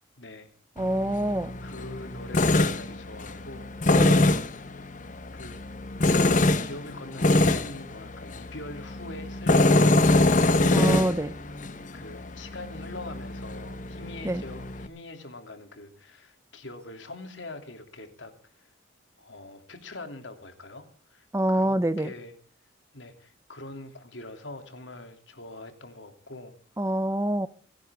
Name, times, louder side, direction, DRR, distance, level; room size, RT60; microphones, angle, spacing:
voice 1, 0.2-0.5 1.6-3.7 5.3-5.6 6.6-11.1 11.9-18.7 19.2-22.3 22.9-26.6, left 2 dB, 75° left, 3.0 m, -43 dB
Tools, 0.8-14.9, left 2 dB, 45° left, 1.1 m, -25 dB
voice 2, 0.8-1.5 3.9-4.2 10.7-11.3 14.2-14.4 21.3-22.1 26.8-27.5, right 1 dB, 15° right, 0.7 m, -26 dB
29.5 x 10.5 x 3.6 m
head